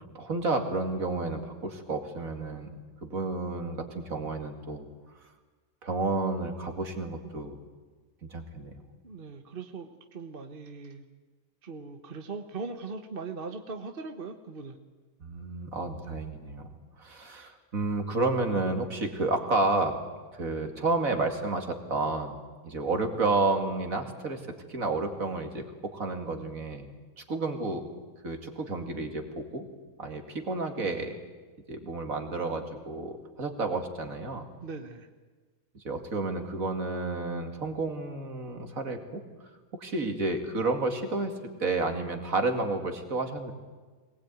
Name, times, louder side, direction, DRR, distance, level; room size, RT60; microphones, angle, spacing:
voice 1, 0.1-2.7 3.0-4.9 5.8-7.6 8.3-8.7 15.2-16.7 17.0-20.0 20.3-22.4 22.6-24.4 24.7-26.9 27.2-27.8 28.2-29.6 30.0-31.1 31.7-34.4 35.8-39.2 39.7-41.3 41.6-43.5, right 3 dB, 55° right, 6 dB, 2.7 m, -31 dB
voice 2, 9.0-11.0 11.6-14.8 34.6-35.1, right 4 dB, 35° right, 6 dB, 1.3 m, -40 dB
22.5 x 19.0 x 9.4 m, 1.4 s
omnidirectional pair, 1.8 m